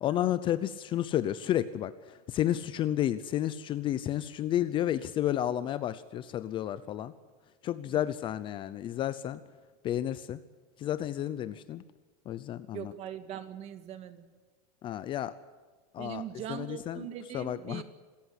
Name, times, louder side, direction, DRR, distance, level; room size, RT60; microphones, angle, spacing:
voice 1, 0.0-7.1 7.6-9.4 9.8-10.4 10.8-11.8 12.3-12.9 14.8-15.3 15.9-16.2 16.5-17.1 17.3-17.8, left 12 dB, 25° left, 15 dB, 0.7 m, -31 dB
voice 2, 12.7-14.2 16.0-17.8, right 10 dB, 30° right, 10 dB, 2.0 m, -41 dB
26.5 x 14.5 x 9.9 m, 1.4 s
supercardioid pair, 165°, 20 cm